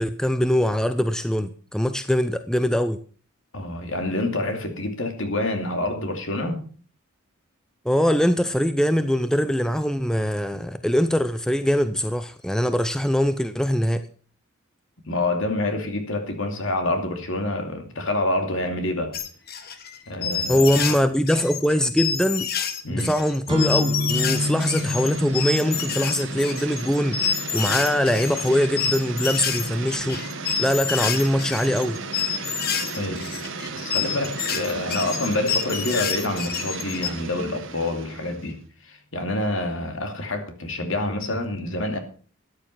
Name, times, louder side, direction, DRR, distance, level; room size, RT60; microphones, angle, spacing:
voice 1, 0.0-3.0 7.8-14.1 20.5-22.5 22.9-30.2 30.6-32.0, equal, 5° left, 0.6 m, -22 dB
voice 2, 3.5-6.6 15.0-19.2 20.1-20.8 22.8-23.1 33.0-33.3 33.8-42.0, left 2 dB, 65° left, 2.7 m, -27 dB
sound 1, 19.1-21.0 21.3-37.1, left 7 dB, 45° left, 1.5 m, -28 dB
sound 2, 23.5-31.2, left 1 dB, 25° right, 4.8 m, -32 dB
sound 3, 24.1-38.6, right 4 dB, 60° right, 1.5 m, -35 dB
13.5 x 9.6 x 5.8 m
head